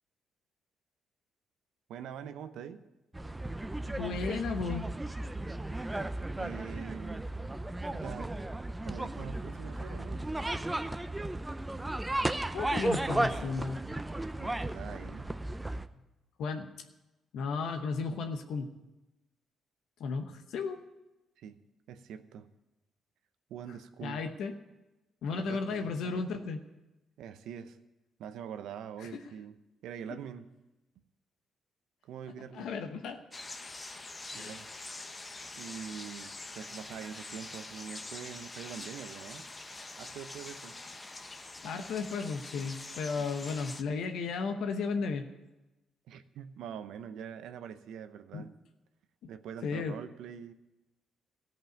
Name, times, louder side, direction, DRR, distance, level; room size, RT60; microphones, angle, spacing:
voice 1, 1.9-2.8 6.3-7.3 7.9-8.3 8.8-10.3 14.4-15.4 21.4-21.6 21.9-22.5 23.5-24.2 25.3-26.2 27.2-27.8 28.2-29.6 29.8-30.5 32.0-32.7 34.3-34.7 35.6-39.5 40.0-40.7 43.1-43.3 46.1-48.5 49.3-50.5, right 8 dB, 80° right, 10 dB, 0.7 m, -44 dB
sound 1, 3.1-15.9, right 1 dB, 15° right, 0.5 m, -35 dB
voice 2, 4.0-4.9 12.5-13.8 16.4-16.7 17.3-18.7 20.0-20.8 24.0-24.5 25.2-26.6 29.0-29.1 32.5-33.2 34.3-34.6 41.6-45.3 48.3-48.4 49.6-49.9, left 4 dB, 75° left, 6 dB, 0.9 m, -34 dB
sound 2, 33.3-43.8, left 2 dB, 25° left, 0.8 m, -45 dB
14.5 x 5.4 x 9.1 m, 1.0 s
cardioid pair, 90°, 0 cm